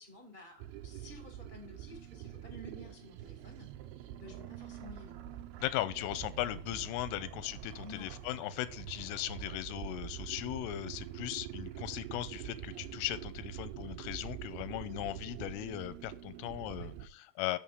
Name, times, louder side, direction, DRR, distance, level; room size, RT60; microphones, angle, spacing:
voice 1, 0.0-3.7 4.1-5.2 6.7-6.8 7.8-8.1 14.5-14.7 16.7-16.9, left 1 dB, 65° right, 2 dB, 0.5 m, -52 dB
sound 1, 0.6-17.1, right 11 dB, 85° right, 2.2 m, -45 dB
voice 2, 5.6-17.6, left 15 dB, 90° left, 15 dB, 3.1 m, -38 dB
7.4 x 6.7 x 5.5 m, 0.41 s
omnidirectional pair, 5.7 m